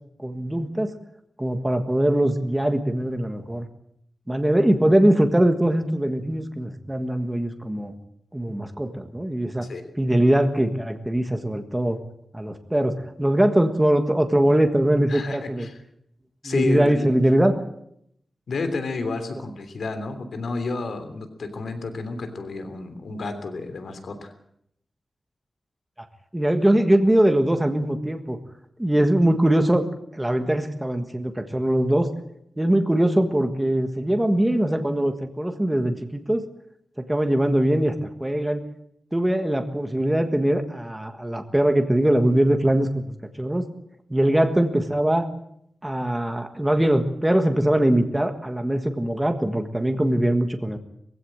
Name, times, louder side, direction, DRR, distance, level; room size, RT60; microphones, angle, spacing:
voice 1, 0.2-1.0 1.4-3.6 4.3-7.9 8.3-9.7 10.0-12.0 12.3-15.7 16.4-17.6 26.3-28.4 28.8-29.9 30.1-32.1 32.6-36.4 37.0-37.9 38.2-38.6 39.1-43.6 44.1-45.3 45.8-50.8, right 1 dB, 10° right, 6 dB, 1.5 m, -22 dB
voice 2, 15.1-15.8 16.4-17.1 18.5-24.3, left 3 dB, 75° left, 8 dB, 3.2 m, -30 dB
22.0 x 16.0 x 8.7 m, 0.72 s
wide cardioid pair, 165°, 0 cm